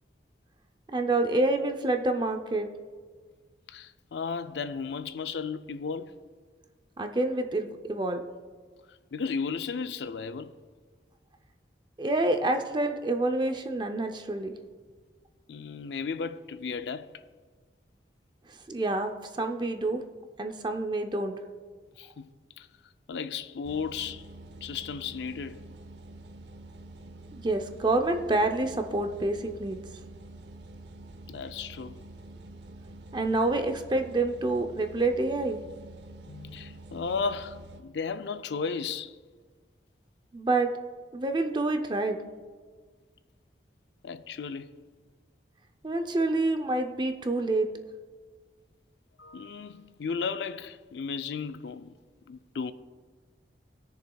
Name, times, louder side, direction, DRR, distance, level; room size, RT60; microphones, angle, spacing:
voice 1, 0.9-2.7 7.0-8.2 12.0-14.6 18.7-20.0 20.4-21.4 27.3-29.8 33.1-35.6 40.3-40.7 41.1-42.3 45.8-47.7, right 2 dB, 25° right, 0.5 m, -27 dB
voice 2, 3.7-6.2 8.9-10.5 15.5-17.2 22.0-22.3 22.6-22.7 23.1-24.3 24.6-25.6 31.3-32.0 36.3-39.1 44.0-44.8 49.2-51.9 52.3-52.7, left 5 dB, 75° left, 0.5 m, -34 dB
sound 1, 23.6-37.8, right 2 dB, 75° right, 0.6 m, -47 dB
20.5 x 6.9 x 2.3 m
head